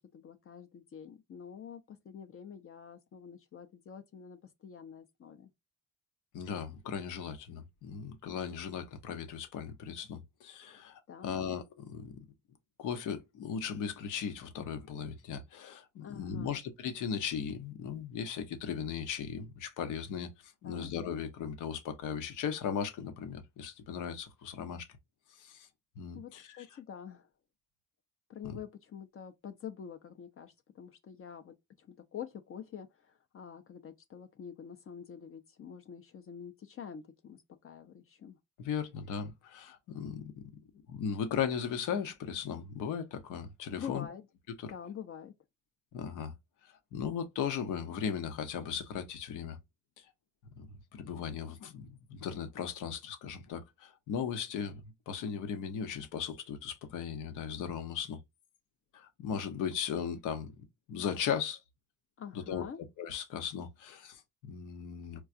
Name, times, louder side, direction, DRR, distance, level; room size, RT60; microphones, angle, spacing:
voice 1, 0.0-5.5 11.1-11.3 16.0-16.6 20.6-20.9 26.1-27.3 28.3-38.4 43.8-44.2 44.7-45.3 62.2-62.8, left 8 dB, 45° left, 0.6 m, -47 dB
voice 2, 6.3-12.2 12.8-24.9 25.4-25.7 26.0-26.7 28.4-28.6 38.6-40.4 40.9-44.1 44.6-44.7 45.9-46.3 46.9-49.6 50.0-50.1 50.6-50.7 50.9-58.2 58.9-60.5 60.9-61.6 62.3-62.7 63.0-65.2, left 7 dB, 85° left, 0.8 m, -37 dB
4.6 x 2.3 x 2.5 m
cardioid pair, 90°, 30 cm